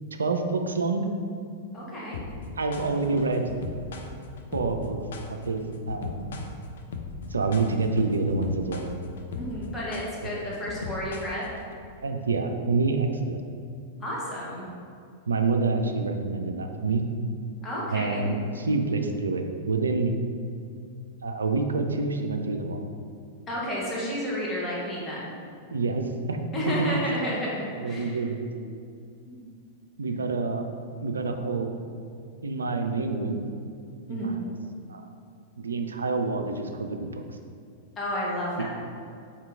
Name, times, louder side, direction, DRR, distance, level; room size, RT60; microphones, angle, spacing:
voice 1, 0.1-1.1 2.6-3.4 4.5-5.0 5.5-6.5 7.3-8.9 10.2-10.4 12.0-13.4 15.3-17.0 17.9-20.2 21.2-22.8 25.7-26.7 27.8-28.4 30.0-30.7 31.0-31.8 32.4-33.5 34.1-34.3 34.9-35.1 35.6-37.2, right 3 dB, 70° right, 5 dB, 0.3 m, -27 dB
voice 2, 1.7-2.2 9.3-11.4 14.0-14.7 17.6-18.2 23.5-25.3 26.5-28.2 29.3-29.4 34.1-34.4 38.0-38.7, equal, 20° left, -6 dB, 1.1 m, -31 dB
sound 1, 2.1-11.7, left 4 dB, 60° left, 0.4 m, -38 dB
4.2 x 2.9 x 3.5 m, 2.4 s
figure-of-eight pair, 95°, 0 cm